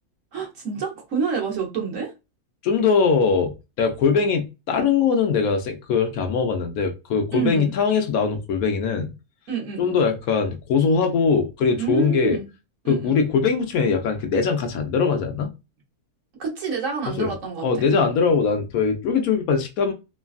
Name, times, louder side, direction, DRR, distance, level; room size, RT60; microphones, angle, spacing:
voice 1, 0.3-2.1 7.3-7.7 9.5-10.0 11.8-12.5 12.8-13.1 16.4-18.1, right 5 dB, 60° right, 1.2 m, -28 dB
voice 2, 2.6-9.1 9.8-12.4 12.9-15.5 17.2-17.3 17.6-19.9, left 5 dB, 75° left, 1.0 m, -21 dB
3.2 x 2.3 x 2.3 m
omnidirectional pair, 1.6 m